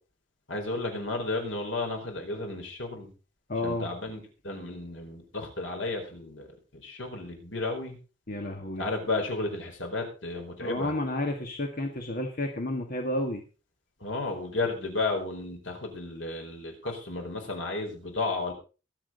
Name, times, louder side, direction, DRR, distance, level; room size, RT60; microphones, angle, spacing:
voice 1, 0.5-3.1 3.6-6.5 6.7-8.0 8.8-10.9 14.0-18.5, left 2 dB, 80° left, 3 dB, 4.6 m, -33 dB
voice 2, 3.5-3.9 8.3-8.9 10.6-13.4, left 1 dB, 50° left, 3 dB, 1.8 m, -31 dB
22.5 x 7.7 x 4.0 m, 0.34 s
head